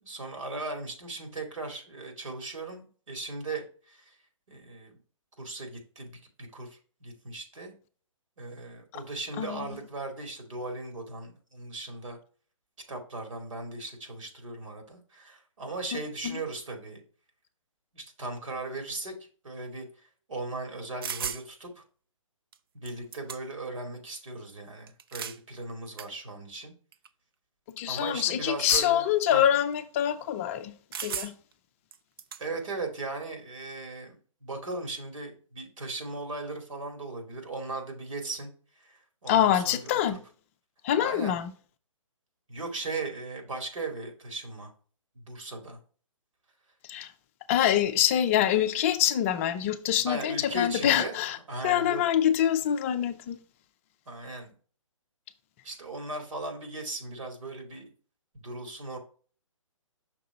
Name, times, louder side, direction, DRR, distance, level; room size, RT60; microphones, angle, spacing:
voice 1, 0.0-4.1 4.5-4.9 5.4-7.7 8.4-12.2 12.9-17.0 17.9-19.1 19.4-21.8 22.7-26.7 27.9-29.4 32.4-38.5 38.8-40.2 41.0-41.4 42.5-44.7 45.1-45.8 50.1-51.2 51.5-52.0 54.1-54.5 55.6-57.9 58.3-59.0, right 2 dB, 70° right, 2.4 m, -38 dB
voice 2, 9.4-9.7 15.9-16.4 27.8-30.7 31.0-31.3 39.3-40.2 40.8-41.5 46.9-47.1 47.5-51.4 51.6-53.4, left 10 dB, 25° left, 0.5 m, -25 dB
sound 1, 21.0-21.4 22.5-22.6 22.9-23.7 24.9-25.4 26.0-26.1 26.9-27.1 28.7-29.1 30.9-31.5 31.9-32.4, right 7 dB, 45° right, 0.5 m, -35 dB
6.0 x 3.8 x 4.8 m
figure-of-eight pair, 140°, 17 cm